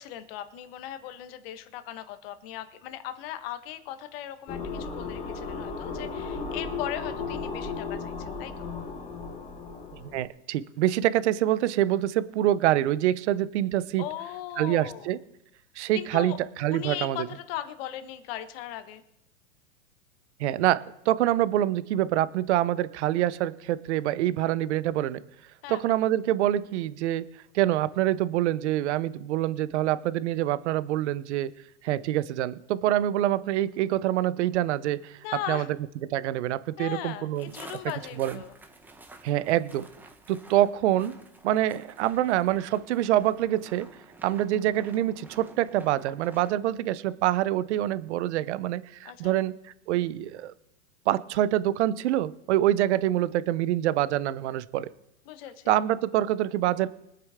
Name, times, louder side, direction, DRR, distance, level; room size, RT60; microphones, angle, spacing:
voice 1, 0.0-8.7 14.0-15.1 15.9-16.4 16.7-19.0 25.6-25.9 35.2-35.7 36.8-38.5 49.0-49.4 55.3-55.8, left 12 dB, 45° left, 10 dB, 1.4 m, -38 dB
sound 1, 4.5-10.2, left 4 dB, 15° left, 1.3 m, -35 dB
voice 2, 10.0-14.0 14.6-15.2 15.8-17.3 20.4-25.2 25.7-27.3 27.5-31.5 31.8-35.2 35.5-35.6 36.0-37.5 38.2-38.4 39.2-39.9 40.3-41.2 41.4-43.9 44.2-49.5 49.9-50.5 51.1-54.9 55.7-56.9, right 13 dB, 55° right, 16 dB, 0.8 m, -26 dB
sound 2, 37.3-46.5, right 2 dB, 5° right, 0.8 m, -50 dB
23.5 x 8.8 x 3.6 m, 0.80 s
supercardioid pair, 150°, 41 cm